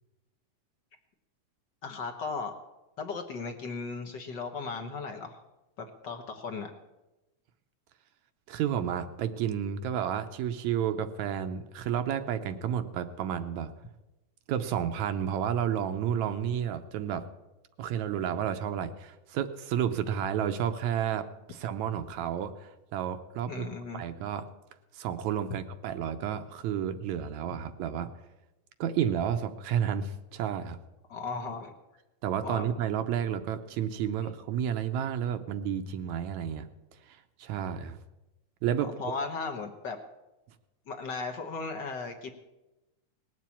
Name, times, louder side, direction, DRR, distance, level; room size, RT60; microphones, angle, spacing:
voice 1, 1.8-2.6 3.0-5.4 5.8-6.7 23.5-24.0 31.1-31.7 32.4-32.7 38.8-40.0 40.9-42.3, left 4 dB, 55° left, 4 dB, 1.2 m, -36 dB
voice 2, 8.5-13.7 14.5-17.2 17.8-23.7 23.9-24.4 24.9-28.1 28.8-30.8 32.2-36.7 37.1-38.0 38.6-38.9, right 9 dB, 75° right, 9 dB, 2.0 m, -31 dB
19.5 x 7.5 x 8.5 m, 1.0 s
omnidirectional pair, 3.6 m